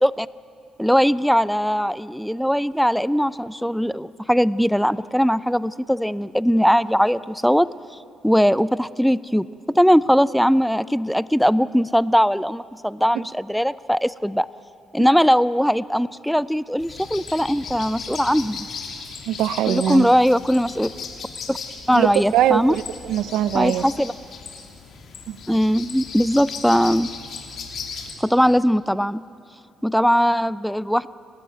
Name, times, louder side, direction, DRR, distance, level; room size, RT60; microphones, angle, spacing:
voice 1, 0.8-7.7 8.2-14.5 14.9-18.7 19.7-20.9 21.5-21.6 21.9-22.8 23.5-24.1 25.5-27.1 28.2-29.2 29.8-31.1, equal, ahead, 18 dB, 0.4 m, -20 dB
sound 1, 16.8-28.1, left 5 dB, 65° left, 3.0 m, -37 dB
voice 2, 19.3-20.1 21.9-23.8 25.3-25.4, right 12 dB, 85° right, 16 dB, 0.6 m, -22 dB
29.0 x 13.0 x 9.4 m, 2.4 s
cardioid pair, 90°, 0 cm